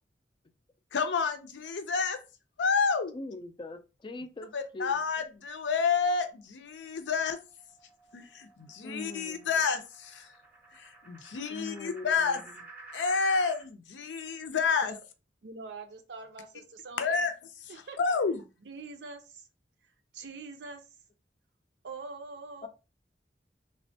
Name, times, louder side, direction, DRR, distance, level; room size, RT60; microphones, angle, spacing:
voice 1, 0.9-2.2 2.6-3.2 4.5-7.4 8.1-10.3 10.7-12.4 12.9-14.9 17.0-17.3 18.0-18.4, left 5 dB, 80° left, 0.5 m, -29 dB
voice 2, 3.1-5.0 8.8-9.6 11.5-12.5 22.6-22.7, left 2 dB, 25° left, 0.3 m, -42 dB
sound 1, 6.9-13.7, right 3 dB, 10° right, 0.6 m, -52 dB
voice 3, 15.4-17.2 17.7-18.2 18.6-19.5 20.1-20.8 21.8-22.7, right 3 dB, 75° right, 0.5 m, -44 dB
3.3 x 2.1 x 2.6 m
head